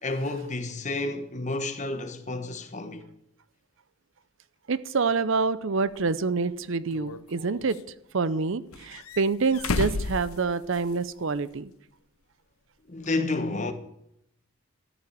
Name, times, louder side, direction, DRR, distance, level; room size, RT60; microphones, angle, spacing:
voice 1, 0.0-3.0 12.9-13.7, left 2 dB, 35° left, 1.3 m, -30 dB
voice 2, 4.7-7.8 8.1-11.7, right 4 dB, 60° right, 0.6 m, -27 dB
sound 1, 5.9-6.0 6.9-7.8 8.7-11.1 11.4-11.5 13.0-13.1, left 3 dB, 80° left, 0.8 m, -33 dB
13.5 x 7.0 x 9.9 m
head